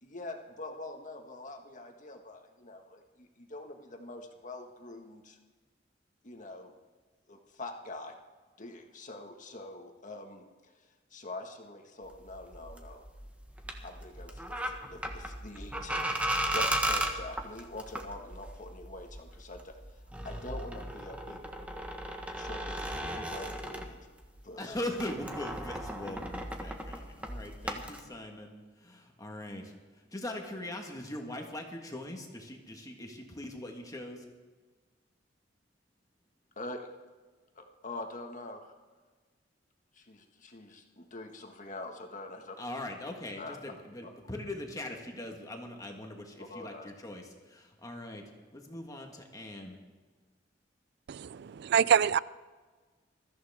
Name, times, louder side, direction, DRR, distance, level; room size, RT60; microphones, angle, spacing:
voice 1, 0.0-5.4 6.2-6.7 7.3-8.2 8.6-10.7 11.1-13.0 13.8-16.1 16.5-19.8 20.2-21.4 22.4-22.9 23.2-24.0 24.4-24.8 36.5-36.8 37.5-38.7 39.9-42.6 43.4-43.6 46.4-46.9, left 2 dB, 45° left, 1.7 m, -44 dB
sound 1, 12.0-24.4 24.7-28.0, right 1 dB, 10° right, 1.4 m, -36 dB
voice 2, 24.6-28.5 28.8-29.7 30.1-34.2 42.6-48.2 48.5-49.8, left 1 dB, 20° left, 1.6 m, -41 dB
voice 3, 51.1-52.2, right 8 dB, 60° right, 0.4 m, -25 dB
21.5 x 14.0 x 3.6 m
head